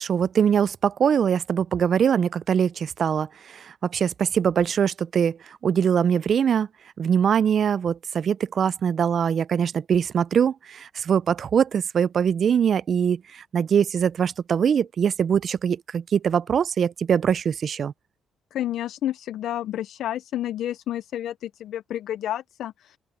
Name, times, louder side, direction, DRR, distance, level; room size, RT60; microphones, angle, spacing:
voice 1, 0.0-6.7 7.0-17.9, right 7 dB, 55° right, 0.4 m, -22 dB
voice 2, 18.5-23.0, left 12 dB, 75° left, 0.5 m, -30 dB
open air
cardioid pair, 90°, 0 cm